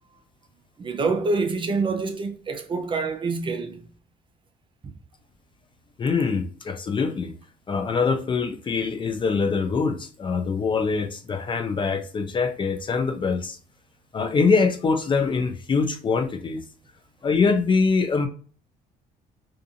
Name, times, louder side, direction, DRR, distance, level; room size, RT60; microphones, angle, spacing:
voice 1, 0.8-3.9, right 3 dB, 30° right, 0.4 m, -26 dB
voice 2, 6.0-7.3 7.7-13.6 14.1-16.6 17.2-18.3, left 4 dB, 30° left, 0.4 m, -23 dB
2.5 x 2.5 x 2.5 m
cardioid pair, 110°, 17 cm